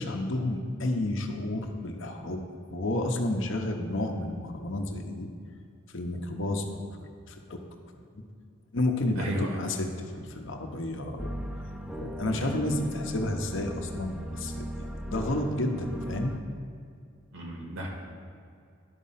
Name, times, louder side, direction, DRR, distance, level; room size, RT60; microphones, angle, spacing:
voice 1, 0.0-2.4 2.7-5.3 5.9-6.9 7.3-7.6 8.1-8.2 8.7-11.3 12.0-16.4, left 1 dB, 60° left, 3 dB, 0.8 m, -31 dB
voice 2, 9.2-9.8 12.3-12.6 17.3-17.9, equal, 75° right, -1 dB, 1.8 m, -35 dB
sound 1, 11.2-16.4, equal, 5° right, 0.4 m, -37 dB
11.0 x 4.2 x 5.6 m, 2.4 s
head